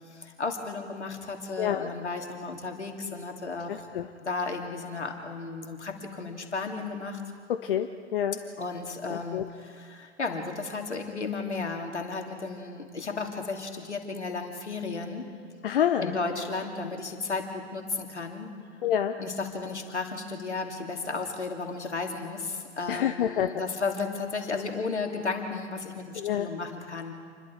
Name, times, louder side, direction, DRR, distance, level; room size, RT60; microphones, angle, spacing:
voice 1, 0.0-3.9 4.2-7.2 8.6-15.3 16.0-18.5 19.2-27.1, left 4 dB, 75° left, 3 dB, 3.0 m, -34 dB
voice 2, 1.6-1.9 3.7-4.1 7.6-8.4 9.1-9.4 15.6-16.1 18.8-19.1 22.9-23.5 26.2-26.5, left 10 dB, 50° left, 8 dB, 0.9 m, -27 dB
28.5 x 22.0 x 4.7 m, 2.1 s
figure-of-eight pair, 105°, 35 cm